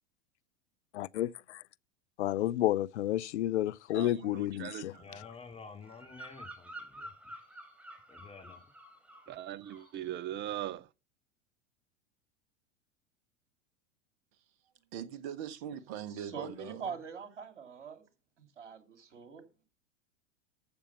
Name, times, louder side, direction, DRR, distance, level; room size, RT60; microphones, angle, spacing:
voice 1, 0.9-1.6 2.2-4.9, left 14 dB, 70° left, 0.6 m, -31 dB
voice 2, 3.9-5.2 9.3-10.9, right 12 dB, 30° right, 0.7 m, -40 dB
voice 3, 5.0-7.4 8.1-8.6, left 5 dB, 15° left, 2.4 m, -50 dB
Bird vocalization bird call bird song, 5.8-9.4 9.6-10.0, right 1 dB, 5° right, 5.3 m, -49 dB
voice 4, 14.9-16.9, right 9 dB, 50° right, 1.6 m, -41 dB
voice 5, 16.2-18.0 18.4-19.4, right 6 dB, 75° right, 2.9 m, -43 dB
14.5 x 6.9 x 5.9 m
hypercardioid pair, 90°, 36 cm